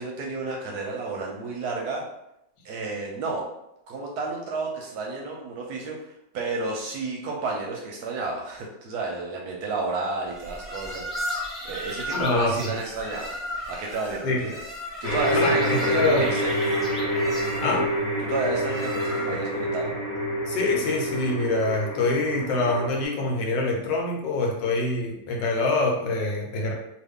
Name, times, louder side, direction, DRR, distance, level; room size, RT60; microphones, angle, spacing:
voice 1, 0.0-2.0 2.6-3.4 3.9-13.3 13.7-14.6 15.0-16.5 18.2-19.9, right 3 dB, 70° right, -1 dB, 1.0 m, -31 dB
sound 1, 10.3-19.5, left 1 dB, ahead, 0.5 m, -35 dB
voice 2, 12.1-12.7 14.2-14.4 15.3-16.2 17.6-17.9 20.5-26.7, left 3 dB, 80° left, 0 dB, 1.4 m, -25 dB
sound 2, 15.0-23.0, equal, 55° left, 1.2 m, -27 dB
3.0 x 2.4 x 3.4 m, 0.83 s
omnidirectional pair, 1.9 m